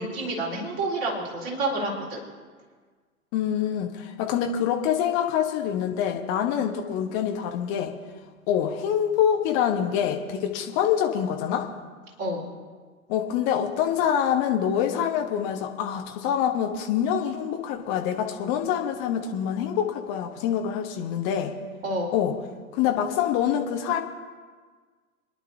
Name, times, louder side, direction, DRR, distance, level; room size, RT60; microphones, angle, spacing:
voice 1, 0.0-2.2 12.2-12.5 21.8-22.2, right 2 dB, 35° right, -4 dB, 4.2 m, -29 dB
voice 2, 3.3-7.9 8.5-11.7 13.1-21.5 22.1-22.3 22.7-24.0, left 9 dB, 25° left, 4 dB, 1.2 m, -25 dB
28.0 x 11.0 x 2.8 m, 1.5 s
figure-of-eight pair, 115°, 44 cm